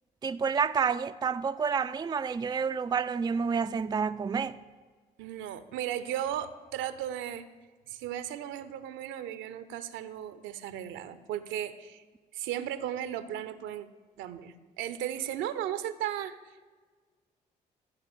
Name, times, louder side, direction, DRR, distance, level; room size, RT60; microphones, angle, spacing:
voice 1, 0.2-4.6, right 6 dB, 20° right, 0.4 m, -29 dB
voice 2, 5.2-7.5 7.9-12.0 12.3-13.9 14.2-16.7, right 11 dB, 70° right, 0.7 m, -36 dB
14.5 x 5.0 x 7.8 m
hypercardioid pair, 45°, 21 cm